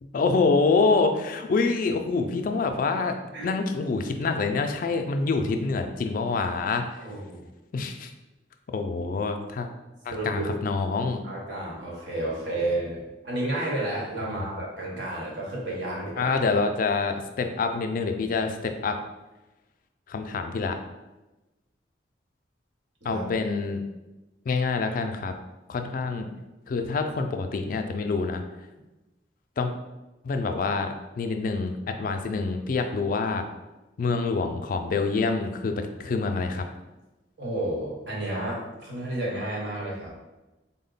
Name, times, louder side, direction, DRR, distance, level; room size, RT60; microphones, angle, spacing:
voice 1, 0.0-3.2 3.4-6.8 7.7-8.1 8.7-9.7 10.1-11.2 14.3-14.4 16.2-19.0 20.1-20.8 23.0-23.8 24.5-25.3 25.7-26.3 26.7-28.4 29.6-29.7 30.2-33.4 34.0-36.6, left 4 dB, 50° left, 6 dB, 0.3 m, -26 dB
voice 2, 7.0-7.5 10.1-10.5 11.2-16.3 23.0-23.3 37.4-40.1, right 1 dB, 75° right, -4 dB, 1.1 m, -31 dB
3.7 x 2.1 x 3.9 m, 1.1 s
head